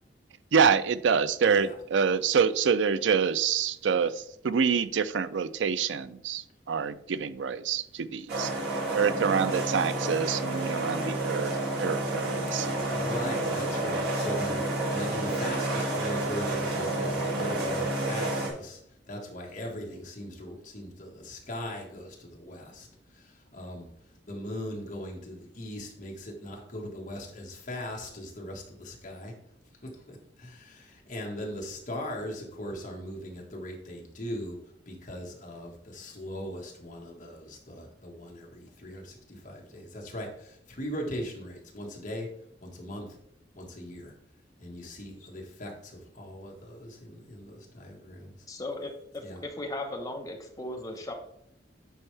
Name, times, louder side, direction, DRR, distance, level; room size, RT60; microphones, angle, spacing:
voice 1, 0.5-8.5 8.9-11.5 11.8-12.7, right 6 dB, 90° right, 15 dB, 0.4 m, -26 dB
sound 1, 8.3-18.5, right 2 dB, 60° right, 2.2 m, -30 dB
voice 2, 12.6-14.5 14.9-18.8 19.1-22.9 23.5-23.9 24.3-29.3 30.1-34.6 34.9-42.3 42.6-43.0 43.5-44.1 44.6-48.3 49.2-49.4, left 1 dB, 45° left, -1 dB, 1.7 m, -39 dB
voice 3, 48.5-51.1, left 2 dB, 20° left, 2 dB, 1.1 m, -37 dB
9.9 x 4.4 x 3.4 m, 0.72 s
head